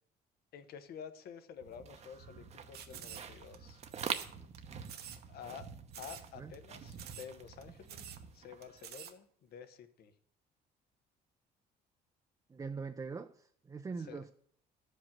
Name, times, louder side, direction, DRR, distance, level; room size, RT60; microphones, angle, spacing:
voice 1, 0.5-3.8 5.3-5.6 6.0-10.1 14.1-14.2, left 7 dB, 70° left, 10 dB, 1.1 m, -50 dB
sound 1, 1.6-8.9, right 6 dB, 40° right, 0.9 m, -46 dB
sound 2, 2.7-3.6 3.9-4.6 4.8-5.2 5.5-5.6 5.9-6.3 6.5-6.6 6.9-7.3 7.6-7.7 7.9-8.2 8.6-9.1, right 9 dB, 70° right, 1.1 m, -48 dB
voice 2, 12.5-14.3, right 4 dB, 20° right, 6 dB, 0.5 m, -42 dB
12.0 x 5.3 x 7.3 m, 0.63 s
cardioid pair, 110°, 17 cm